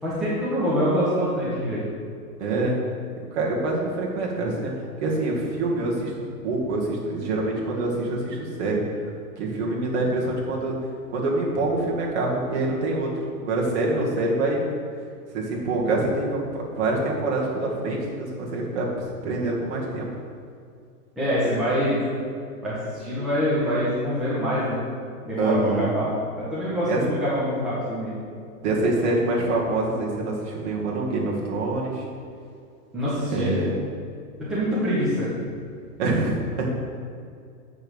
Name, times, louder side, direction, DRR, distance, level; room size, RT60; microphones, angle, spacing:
voice 1, 0.0-1.8 21.2-22.0 22.6-24.8 25.2-28.1 32.9-33.5 34.4-35.3, equal, ahead, -11 dB, 0.8 m, -25 dB
voice 2, 2.4-2.8 3.3-4.7 5.0-8.8 9.4-10.8 11.1-13.1 13.4-14.7 15.3-18.9 19.2-20.1 25.3-25.9 26.9-27.0 28.6-32.1 33.3-33.8 36.0-36.7, right 2 dB, 45° right, -3 dB, 2.2 m, -25 dB
7.7 x 5.6 x 6.4 m, 2.3 s
hypercardioid pair, 165°, 47 cm